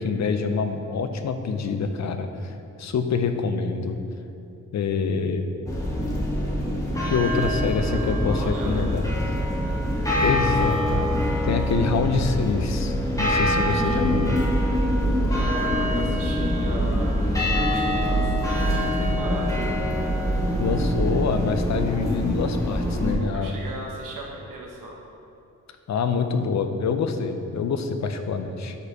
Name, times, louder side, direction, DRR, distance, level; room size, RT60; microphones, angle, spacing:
voice 1, 0.0-4.0 4.7-5.4 7.0-9.0 10.2-14.4 20.6-23.5 25.9-28.8, left 5 dB, 60° left, 8 dB, 0.5 m, -26 dB
sound 1, 5.7-23.1, equal, 10° left, 1.3 m, -24 dB
voice 2, 6.9-9.1 15.3-19.7 23.3-25.0, right 1 dB, 85° right, -1 dB, 1.0 m, -37 dB
5.3 x 4.2 x 4.7 m, 2.7 s
cardioid pair, 70°, 32 cm